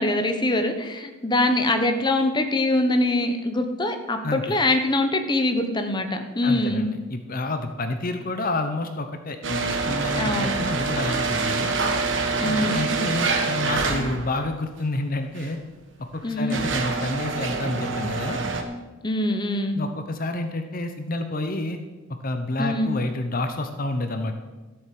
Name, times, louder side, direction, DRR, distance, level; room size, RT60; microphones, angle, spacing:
voice 1, 0.0-6.8 10.2-10.5 12.4-12.9 16.2-16.6 19.0-19.8 22.6-22.9, left 1 dB, 20° left, 6 dB, 1.1 m, -23 dB
voice 2, 4.2-4.6 6.4-11.7 12.4-15.6 16.0-18.4 19.7-21.8 22.1-24.4, left 2 dB, 45° left, 7 dB, 0.9 m, -29 dB
sound 1, 9.4-14.4 15.4-15.5 16.2-18.6, right 4 dB, 65° right, 1.6 m, -26 dB
13.5 x 8.1 x 7.6 m, 1.2 s
head